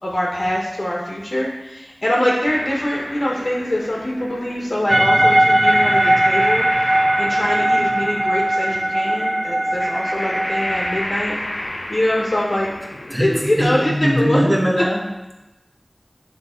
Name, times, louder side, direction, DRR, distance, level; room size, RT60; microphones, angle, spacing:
voice 1, 0.0-6.7 7.2-11.4 11.9-12.7 13.2-14.4, left 1 dB, 60° left, -4 dB, 1.2 m, -23 dB
sound 1, 2.4-13.6, left 1 dB, 85° left, 0.8 m, -31 dB
sound 2, 4.9-11.0, right 1 dB, 35° right, 0.4 m, -18 dB
voice 2, 13.1-15.1, equal, 10° right, -3 dB, 1.6 m, -20 dB
9.3 x 3.3 x 4.4 m, 1.0 s
wide cardioid pair, 50°, 0 cm